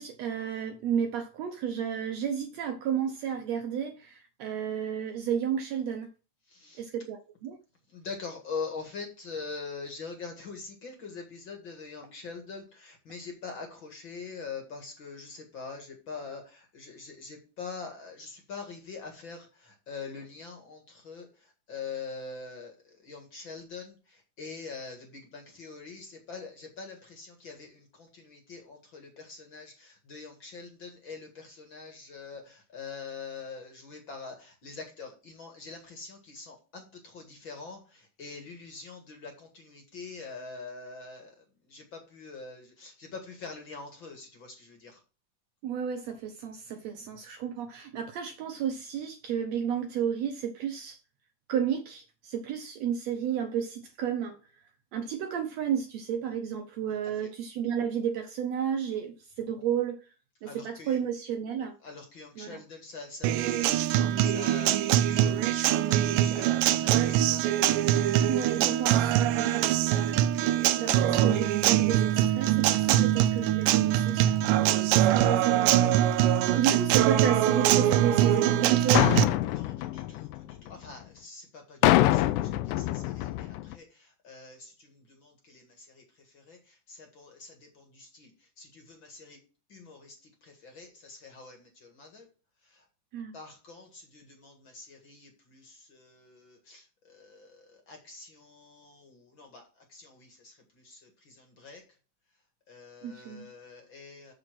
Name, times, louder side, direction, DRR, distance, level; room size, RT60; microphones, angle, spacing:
voice 1, 0.0-6.1 6.8-7.6 45.6-51.0 51.5-54.4 54.9-60.1 60.4-61.8 62.4-62.6 68.3-69.9 70.8-76.1 76.5-79.2 93.1-93.4 103.0-103.5, right 8 dB, 70° right, 1.7 m, -32 dB
voice 2, 6.5-6.9 7.9-45.0 60.5-61.0 61.8-63.7 64.0-67.4 76.4-76.6 79.5-88.3 88.6-89.4 89.7-92.3 92.6-92.8 93.3-101.8 102.7-104.3, left 4 dB, 45° left, 2.1 m, -44 dB
Acoustic guitar, 63.2-79.2, right 12 dB, 90° right, 2.2 m, -23 dB
sound 1, 78.9-80.9 81.8-83.7, left 15 dB, 85° left, 2.2 m, -25 dB
6.9 x 6.6 x 6.0 m
omnidirectional pair, 3.7 m